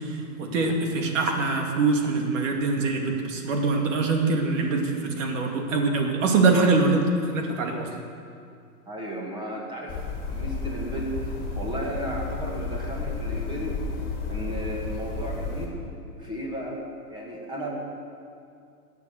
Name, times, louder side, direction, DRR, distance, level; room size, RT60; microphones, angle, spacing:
voice 1, 0.4-7.0 7.3-7.9, right 3 dB, 55° right, 2 dB, 2.3 m, -23 dB
voice 2, 8.9-10.0 10.3-13.8 14.3-15.8 16.2-16.8 17.1-17.7, right 1 dB, 10° right, -2 dB, 2.2 m, -34 dB
sound 1, 9.9-15.7, left 4 dB, 25° left, 2.4 m, -32 dB
20.0 x 7.2 x 6.6 m, 2.4 s
hypercardioid pair, 145°, 45 cm